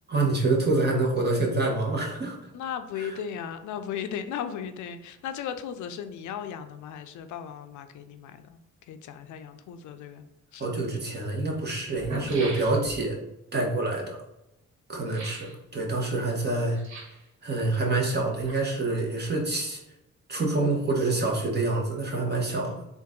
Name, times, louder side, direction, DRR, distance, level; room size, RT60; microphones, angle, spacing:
voice 1, 0.1-2.4 3.0-3.1 10.6-13.2 13.5-14.2 14.9-16.8 17.4-19.8 20.3-22.7, right 2 dB, 35° right, -1 dB, 1.1 m, -26 dB
voice 2, 2.5-10.2 10.5-10.7 22.6-22.9, left 8 dB, 75° left, 9 dB, 0.5 m, -36 dB
sound 1, 10.6-10.7 11.5-11.6 11.9-13.1 15.1-15.6 16.7-17.3 18.1-18.9 19.2-19.3, right 1 dB, 65° right, 1.5 m, -40 dB
3.8 x 2.5 x 3.7 m, 0.91 s
cardioid pair, 90°, 30 cm